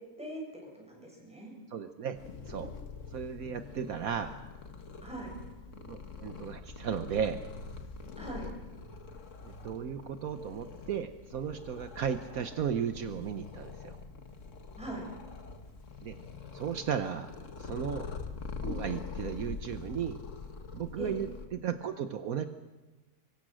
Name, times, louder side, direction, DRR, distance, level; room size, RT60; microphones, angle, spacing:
voice 1, 0.7-1.5 5.0-5.3 8.2-8.5 14.8-15.1 21.0-21.1, right 1 dB, 5° right, -1 dB, 7.6 m, -41 dB
voice 2, 1.7-2.2 2.5-2.7 3.1-4.3 5.8-7.4 9.4-14.0 16.0-16.1 16.5-17.3 17.6-18.1 18.6-20.2 20.7-22.5, right 8 dB, 70° right, 8 dB, 1.3 m, -35 dB
Purr, 2.1-21.5, left 4 dB, 55° left, 1.9 m, -44 dB
25.0 x 23.0 x 6.3 m, 1.2 s
omnidirectional pair, 1.6 m